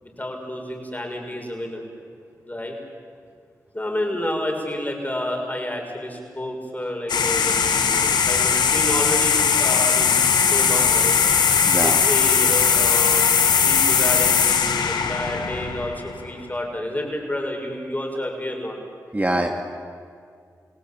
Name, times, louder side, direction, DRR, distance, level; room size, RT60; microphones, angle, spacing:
voice 1, 0.0-1.8 2.5-2.7 3.7-11.2 11.8-13.4 13.6-18.8, left 1 dB, 25° left, 1 dB, 6.6 m, -29 dB
sound 1, 7.1-16.3, left 6 dB, 90° left, 1.5 m, -19 dB
voice 2, 11.6-12.0 19.1-19.5, right 1 dB, 20° right, 3 dB, 2.3 m, -23 dB
29.0 x 17.5 x 8.7 m, 2.2 s
cardioid pair, 40°, 7 cm